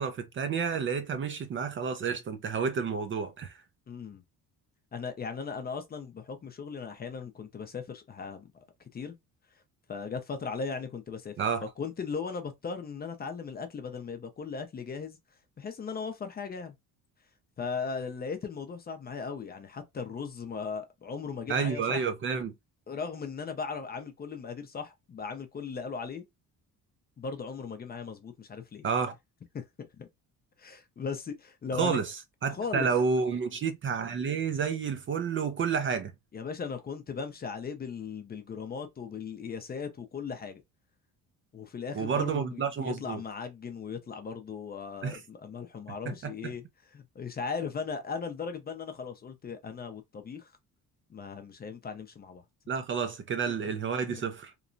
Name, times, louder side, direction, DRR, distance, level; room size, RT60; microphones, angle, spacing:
voice 1, 0.0-3.6 11.4-11.6 21.5-22.5 28.8-29.2 31.7-36.1 41.9-43.2 45.0-45.2 46.1-46.5 52.7-54.5, right 6 dB, 35° right, 0.4 m, -30 dB
voice 2, 3.9-4.2 4.9-8.5 8.9-9.1 9.9-11.3 11.6-15.2 15.6-16.8 17.6-22.0 22.9-26.2 27.2-28.8 29.5-29.6 30.0-30.1 30.6-32.0 32.5-32.9 36.3-40.6 41.5-46.6 46.9-50.5 51.1-52.4 54.1-54.2, left 5 dB, 25° left, 0.5 m, -37 dB
2.9 x 2.1 x 2.5 m
cardioid pair, 125°, 35 cm